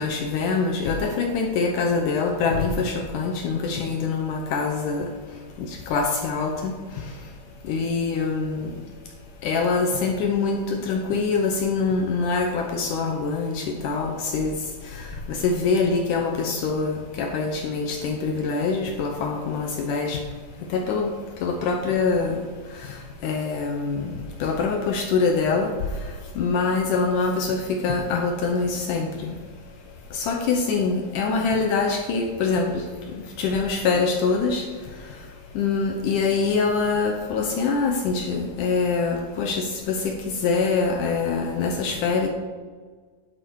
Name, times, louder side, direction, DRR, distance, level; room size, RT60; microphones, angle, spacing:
voice 1, 0.0-5.1 5.6-7.1 7.6-8.7 9.4-14.6 14.9-20.2 20.7-21.1 21.4-22.4 22.8-25.7 26.4-29.4 30.1-32.9 33.1-34.7 35.6-42.3, left 4 dB, 75° left, 3 dB, 1.9 m, -24 dB
10.5 x 8.0 x 4.7 m, 1.5 s
omnidirectional pair, 4.6 m